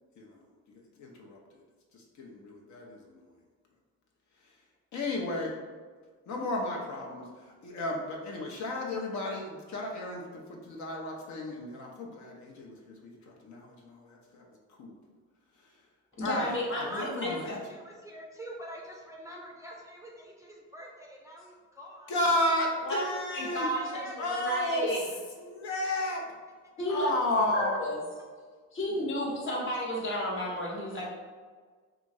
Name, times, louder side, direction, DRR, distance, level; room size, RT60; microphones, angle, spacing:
voice 1, 0.7-1.4 1.9-3.2 4.9-5.5 6.3-14.5 14.8-15.0 16.2-16.5 16.9-17.6 22.1-23.7 24.2-24.9 25.4-26.2 26.9-27.8, left 1 dB, 70° left, -1 dB, 0.6 m, -33 dB
voice 2, 16.2-17.5 22.8-23.0 23.3-25.0 26.8-28.0 28.7-31.1, equal, 40° left, -3 dB, 0.9 m, -32 dB
voice 3, 16.9-22.1 23.5-24.4, equal, 10° right, -2 dB, 0.3 m, -44 dB
2.9 x 2.5 x 2.6 m, 1.5 s
cardioid pair, 90°, 30 cm